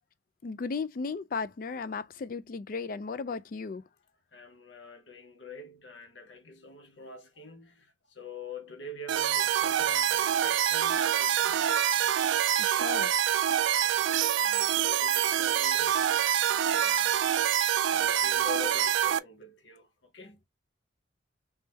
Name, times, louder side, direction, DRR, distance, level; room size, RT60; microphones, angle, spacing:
voice 1, 0.4-3.8 12.6-13.1, left 4 dB, 50° left, 0.4 m, -35 dB
voice 2, 4.3-12.1 12.7-13.2 13.8-17.2 17.9-20.5, left 3 dB, 80° left, 0.9 m, -46 dB
sound 1, 9.1-19.2, right 10 dB, 85° right, 0.3 m, -26 dB
3.3 x 3.2 x 3.1 m
head